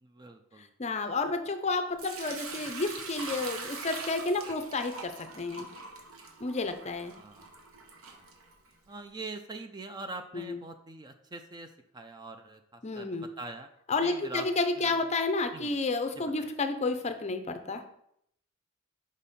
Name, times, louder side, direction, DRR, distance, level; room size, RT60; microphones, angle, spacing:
voice 1, 0.0-0.7 7.1-7.5 8.1-8.3 8.9-13.7 14.0-14.5 14.8-14.9 15.5-15.7 16.4-16.5, right 2 dB, 20° right, 7 dB, 0.4 m, -43 dB
voice 2, 0.6-5.7 6.4-7.1 10.3-10.6 12.8-13.3 13.9-17.8, left 3 dB, 30° left, 8 dB, 0.5 m, -31 dB
Sink (filling or washing) / Liquid, 2.0-8.9, right 4 dB, 85° right, 1.1 m, -43 dB
5.3 x 5.0 x 4.2 m, 0.72 s
head